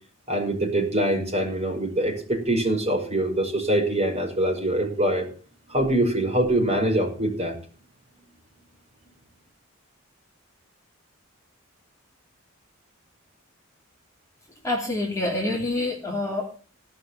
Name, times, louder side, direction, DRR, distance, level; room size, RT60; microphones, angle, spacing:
voice 1, 0.3-5.3 5.7-7.6, right 1 dB, 30° right, 0 dB, 5.9 m, -24 dB
voice 2, 14.6-16.6, left 2 dB, 15° left, -2 dB, 2.8 m, -27 dB
17.5 x 5.9 x 8.5 m, 0.40 s
head